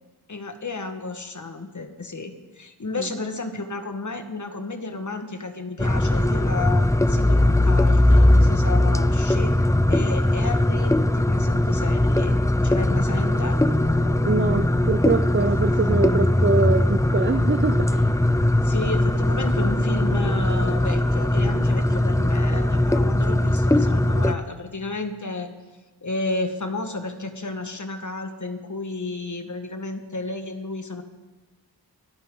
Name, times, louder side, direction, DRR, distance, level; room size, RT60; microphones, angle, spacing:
voice 1, 0.3-9.6 9.9-12.4 12.6-13.6 18.6-25.5 26.0-31.0, left 3 dB, 45° left, 6 dB, 1.7 m, -32 dB
sound 1, 5.8-24.4, left 1 dB, 10° left, 0.6 m, -20 dB
Growling, 10.6-12.1 12.5-15.5 16.0-22.8 23.1-23.2, right 2 dB, 75° right, 6.8 m, -41 dB
voice 2, 14.2-18.1, right 4 dB, 30° right, 8 dB, 0.8 m, -24 dB
24.0 x 14.0 x 3.9 m, 1.2 s
cardioid pair, 55°, 40 cm